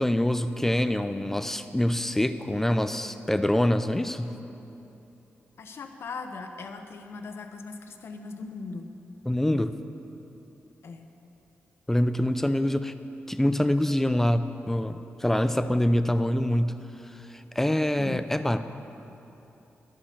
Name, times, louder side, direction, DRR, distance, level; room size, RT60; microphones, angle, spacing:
voice 1, 0.0-4.3 9.3-9.7 11.9-12.9 13.3-16.8 17.1-18.6, left 1 dB, 5° left, 11 dB, 0.3 m, -25 dB
voice 2, 5.6-8.9 10.8-11.1 18.0-18.2, left 4 dB, 65° left, 6 dB, 0.9 m, -39 dB
12.0 x 8.4 x 6.8 m, 2.9 s
wide cardioid pair, 155°, 5 cm